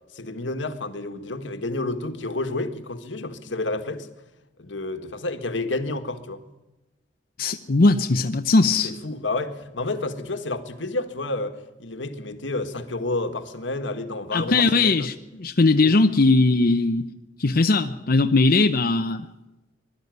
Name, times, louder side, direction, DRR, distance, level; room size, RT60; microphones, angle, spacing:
voice 1, 0.1-4.1 4.6-6.4 8.8-15.1 15.8-16.0, left 2 dB, 80° left, 1.7 m, -30 dB
voice 2, 7.4-8.9 14.3-17.1 17.4-19.3, left 3 dB, 50° left, 0.7 m, -19 dB
21.5 x 12.5 x 9.4 m
head